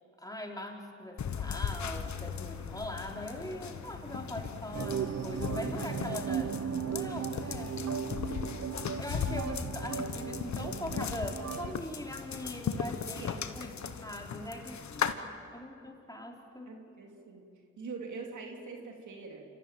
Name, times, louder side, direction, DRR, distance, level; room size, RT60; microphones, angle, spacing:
voice 1, 0.2-6.5 6.8-7.8 8.7-15.1 15.5-16.8, left 1 dB, 10° left, 0 dB, 4.4 m, -41 dB
sound 1, 1.2-15.1, left 7 dB, 70° left, 1.3 m, -37 dB
sound 2, 4.7-11.7, right 7 dB, 60° right, 0.9 m, -36 dB
voice 2, 16.7-17.5 17.8-19.4, right 4 dB, 80° right, 1 dB, 2.9 m, -43 dB
27.5 x 15.0 x 9.2 m, 2.4 s
supercardioid pair, 45°, 29 cm